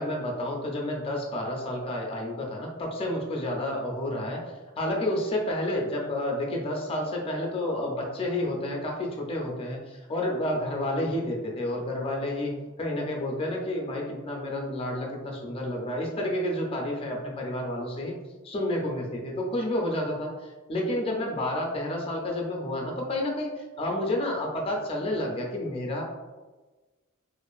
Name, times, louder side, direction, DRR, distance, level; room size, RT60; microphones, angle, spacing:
voice 1, 0.0-4.4 4.8-18.1 18.4-26.0, left 1 dB, 25° left, 0 dB, 0.4 m, -30 dB
2.5 x 2.4 x 2.3 m, 1.2 s
head